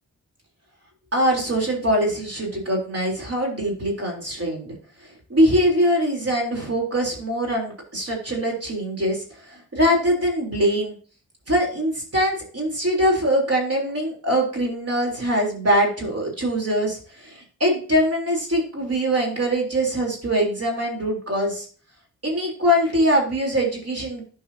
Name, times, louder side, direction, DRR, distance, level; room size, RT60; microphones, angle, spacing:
voice 1, 1.1-4.7 5.3-10.9 11.5-21.7 22.2-24.2, equal, 40° right, 0 dB, 3.3 m, -23 dB
12.0 x 4.9 x 2.7 m, 0.41 s
cardioid pair, 45°, 36 cm